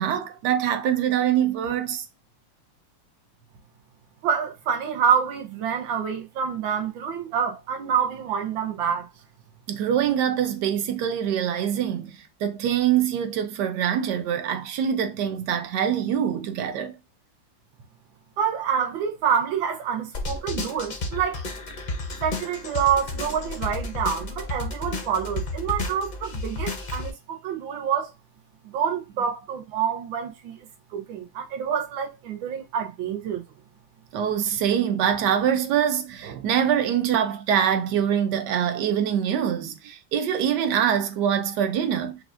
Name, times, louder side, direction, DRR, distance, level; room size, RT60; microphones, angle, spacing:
voice 1, 0.0-2.1 9.7-17.0 34.1-42.2, right 9 dB, 70° right, 1.2 m, -24 dB
voice 2, 4.2-9.1 18.4-21.4 22.2-28.1 28.7-30.6 30.9-33.4, right 7 dB, 90° right, 1.6 m, -27 dB
sound 1, 20.1-27.1, left 2 dB, 65° left, 0.4 m, -32 dB
5.9 x 2.5 x 2.5 m
omnidirectional pair, 2.0 m